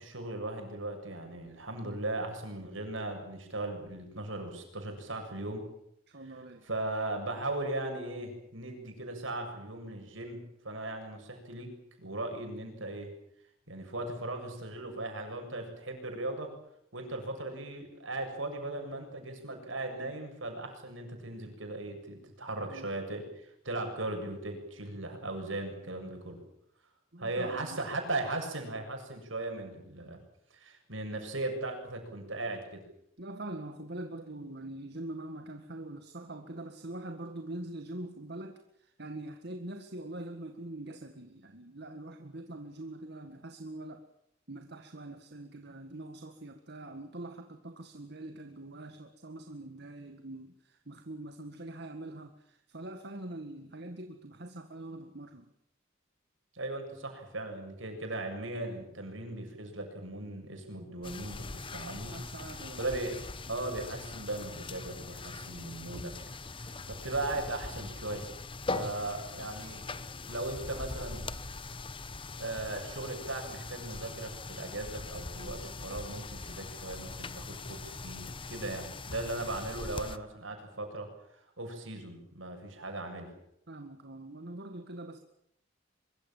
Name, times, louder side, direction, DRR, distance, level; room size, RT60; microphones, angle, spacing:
voice 1, 0.0-5.6 6.7-11.7 12.0-13.1 13.7-16.5 16.9-26.4 27.2-30.2 30.5-32.8 56.5-62.2 62.8-63.1 63.5-66.1 66.5-68.3 68.7-69.8 70.3-71.3 72.4-81.1 81.3-83.3, right 2 dB, 75° right, 4 dB, 7.2 m, -38 dB
voice 2, 6.1-6.7 22.6-22.9 27.1-27.8 33.2-44.1 44.5-55.5 62.1-62.8 83.7-85.2, right 1 dB, 55° right, 6 dB, 1.9 m, -43 dB
sound 1, 61.0-80.2, left 3 dB, 25° left, 1.1 m, -41 dB
23.5 x 23.5 x 7.4 m, 0.73 s
head